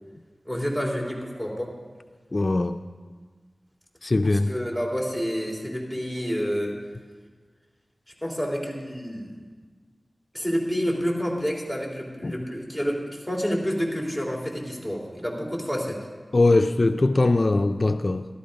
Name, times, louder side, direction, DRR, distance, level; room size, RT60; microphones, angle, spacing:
voice 1, 0.4-1.8 4.3-6.8 8.2-9.4 10.3-16.1, equal, 10° right, -2 dB, 3.4 m, -29 dB
voice 2, 2.3-2.8 4.0-4.5 12.2-12.4 16.3-18.3, left 2 dB, 50° left, 7 dB, 0.4 m, -21 dB
13.0 x 13.0 x 5.2 m, 1.5 s
wide cardioid pair, 55°, 0 cm